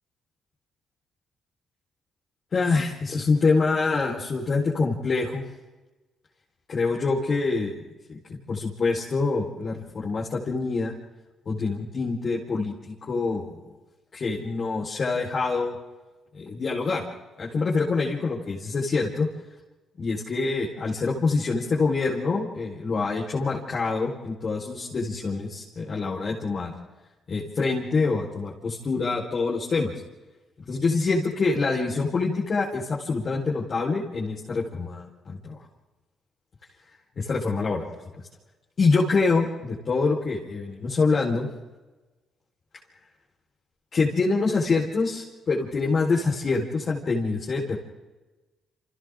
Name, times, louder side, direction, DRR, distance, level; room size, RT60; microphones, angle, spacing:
voice 1, 2.5-5.4 6.7-7.8 8.1-10.9 11.4-13.6 14.1-15.8 16.3-17.0 17.4-19.3 20.0-26.7 27.3-29.9 30.7-35.6 37.2-37.9 38.8-41.5 43.9-47.8, left 4 dB, 45° left, -4 dB, 4.7 m, -25 dB
30.0 x 27.5 x 3.9 m, 1.2 s
cardioid pair, 90°, 0 cm